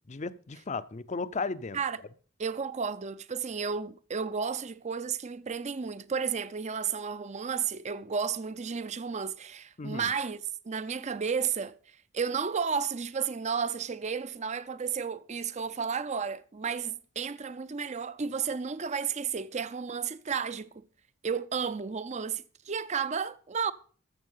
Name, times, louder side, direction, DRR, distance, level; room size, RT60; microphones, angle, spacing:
voice 1, 0.1-1.8 9.8-10.1, left 4 dB, 35° left, 0.6 m, -35 dB
voice 2, 2.4-11.8 12.1-20.9 21.2-23.7, right 6 dB, 30° right, 0.5 m, -32 dB
14.0 x 7.0 x 5.5 m
head